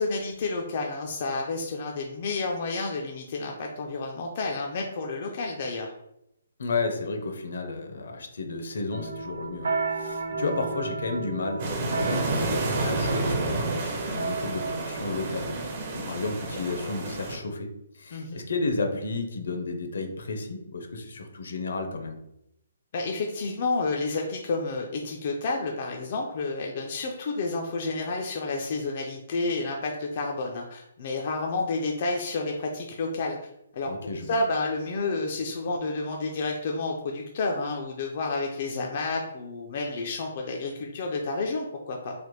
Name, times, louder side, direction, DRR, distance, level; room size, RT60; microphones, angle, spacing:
voice 1, 0.0-5.9 10.4-10.5 18.1-18.4 22.9-33.4 33.7-33.9 34.3-42.1, left 3 dB, 40° left, 1 dB, 0.3 m, -30 dB
voice 2, 6.6-22.2 33.8-34.4, left 3 dB, 70° left, 4 dB, 0.7 m, -32 dB
Swinging Flemish Bell, 8.9-16.4, right 4 dB, 80° right, 0.5 m, -34 dB
sound 1, 11.6-17.4, right 2 dB, 35° right, 0.5 m, -30 dB
3.2 x 2.1 x 3.0 m, 0.81 s
hypercardioid pair, 170°, 0 cm